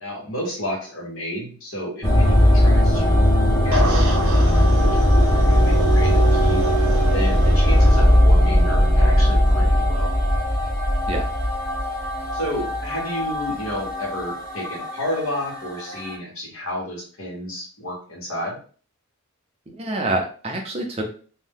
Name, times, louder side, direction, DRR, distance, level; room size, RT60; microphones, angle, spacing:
voice 1, 0.0-3.3 3.6-4.0 5.1-6.8 7.1-10.1 12.3-18.6, left 1 dB, 70° left, -1 dB, 1.2 m, -31 dB
sound 1, 2.0-16.1, equal, 15° left, 0.6 m, -18 dB
sound 2, 3.7-8.0, right 1 dB, 80° right, 0.8 m, -31 dB
voice 2, 19.8-21.0, right 2 dB, 30° right, 2 dB, 0.5 m, -26 dB
2.7 x 2.1 x 3.5 m, 0.41 s
head